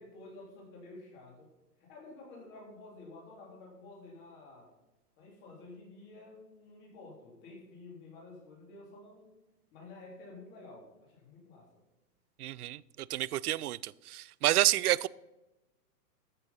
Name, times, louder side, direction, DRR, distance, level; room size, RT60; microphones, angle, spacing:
voice 1, 0.0-1.5 1.8-4.7 5.2-9.3 9.7-11.7 14.4-14.6, left 2 dB, 25° left, 3.5 m, -51 dB
voice 2, 12.4-12.8 13.1-15.1, right 14 dB, 65° right, 0.5 m, -29 dB
13.5 x 6.8 x 5.6 m
hypercardioid pair, 165°, 49 cm